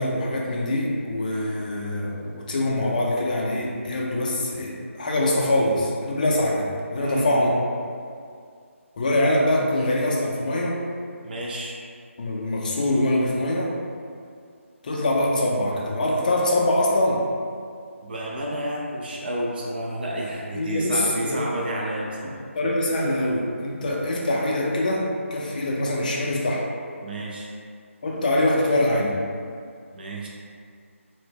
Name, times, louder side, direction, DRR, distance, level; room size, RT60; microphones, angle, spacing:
voice 1, 0.0-7.5 9.0-10.8 12.2-13.7 14.8-17.2 20.5-21.4 22.2-22.3 22.6-26.6 28.0-29.2, left 1 dB, 35° left, -2 dB, 0.4 m, -24 dB
voice 2, 7.0-7.5 11.2-11.8 18.0-22.4 27.0-27.5 29.9-30.3, right 1 dB, 45° right, -3 dB, 0.3 m, -30 dB
2.0 x 2.0 x 3.3 m, 2.2 s
figure-of-eight pair, 155°, 7 cm